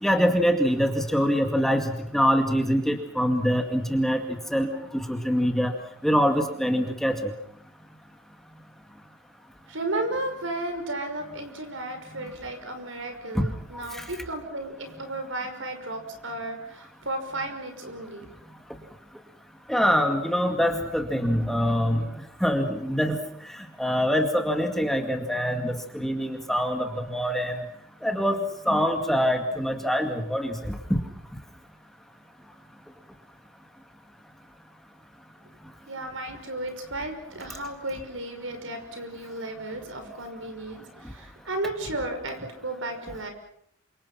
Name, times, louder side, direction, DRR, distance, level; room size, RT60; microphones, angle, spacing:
voice 1, 0.0-4.2 4.5-5.7 6.0-7.2 13.3-13.5 13.9-14.0 19.7-22.0 22.4-23.2 23.8-27.6 28.0-28.4 28.7-31.0, equal, ahead, 4 dB, 2.2 m, -24 dB
voice 2, 9.7-18.3 35.9-43.3, right 2 dB, 75° right, 6 dB, 5.8 m, -34 dB
28.5 x 25.5 x 5.8 m, 0.68 s
head